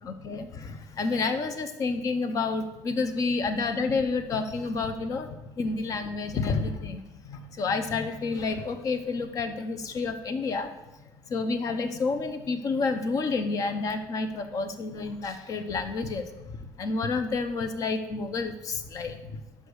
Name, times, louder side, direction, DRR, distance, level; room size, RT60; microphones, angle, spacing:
voice 1, 0.0-10.7 11.3-16.3 16.8-19.4, left 4 dB, 45° left, 9 dB, 0.8 m, -29 dB
5.6 x 4.8 x 6.3 m, 1.0 s
cardioid pair, 125°, 8 cm